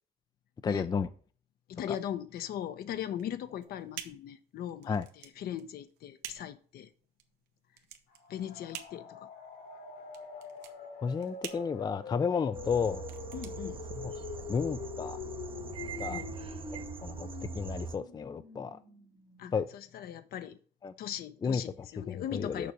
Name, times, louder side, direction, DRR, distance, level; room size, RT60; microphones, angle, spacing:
voice 1, 0.6-1.1 1.9-2.0 4.9-5.1 11.0-13.0 14.0-14.1 14.5-15.2 16.0-16.2 16.7-17.3 17.5-18.8 19.5-19.7 20.8-20.9 21.4-22.7, left 6 dB, 25° left, 0.4 m, -32 dB
voice 2, 1.7-6.9 8.3-9.3 13.3-13.8 16.0-16.3 19.4-20.6 21.0-22.7, left 10 dB, 65° left, 0.8 m, -39 dB
sound 1, 3.1-14.4, right 11 dB, 90° right, 1.0 m, -49 dB
sound 2, 8.1-19.8, left 6 dB, 80° left, 2.4 m, -45 dB
sound 3, 12.5-18.0, right 8 dB, 30° right, 0.8 m, -42 dB
6.8 x 5.1 x 6.6 m
cardioid pair, 110°, 17 cm